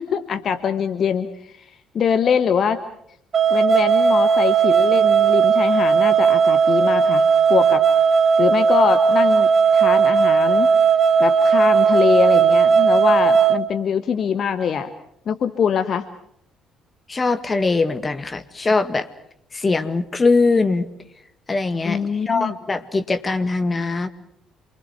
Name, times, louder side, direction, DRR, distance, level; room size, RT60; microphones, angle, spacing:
voice 1, 0.0-2.8 3.5-7.9 8.4-10.7 11.2-14.9 15.3-16.0 21.8-22.6, left 7 dB, 45° left, 9 dB, 1.3 m, -23 dB
sound 1, 3.3-13.6, right 6 dB, 40° right, 1.5 m, -16 dB
voice 2, 17.1-19.1 19.5-20.9 21.5-24.1, left 3 dB, 25° left, 10 dB, 1.9 m, -21 dB
28.0 x 24.5 x 6.0 m, 0.69 s
figure-of-eight pair, 50°, 0 cm